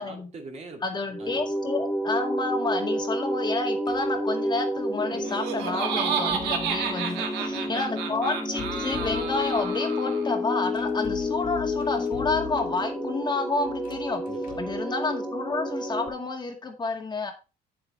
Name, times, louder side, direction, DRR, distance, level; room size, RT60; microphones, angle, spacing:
voice 1, 0.0-1.5 7.1-7.9 14.2-14.6, right 3 dB, 40° right, 2.7 m, -43 dB
voice 2, 0.8-7.2 7.7-14.2 14.6-17.3, left 3 dB, 25° left, 2.1 m, -30 dB
sound 1, 1.1-16.1, left 1 dB, 5° left, 1.7 m, -30 dB
sound 2, 3.8-4.2 6.1-7.0 8.4-9.7 10.7-12.9 13.7-14.8, left 11 dB, 55° left, 1.6 m, -43 dB
Laughter, 5.1-10.3, right 7 dB, 90° right, 1.8 m, -31 dB
8.6 x 7.9 x 3.2 m
cardioid pair, 110°, 17 cm